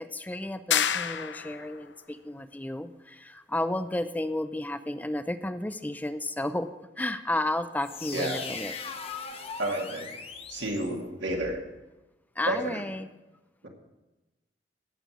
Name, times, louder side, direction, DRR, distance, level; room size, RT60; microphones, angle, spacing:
voice 1, 0.0-8.7 12.4-13.1, left 1 dB, 10° left, 11 dB, 0.4 m, -32 dB
sound 1, 0.7-1.8, left 9 dB, 75° left, 0.6 m, -28 dB
sound 2, 7.8-11.6, left 5 dB, 30° left, 1.0 m, -40 dB
voice 2, 9.6-10.1 10.5-11.6 12.5-12.8, right 1 dB, 85° right, 1 dB, 2.4 m, -30 dB
16.5 x 6.8 x 6.1 m, 1.1 s
head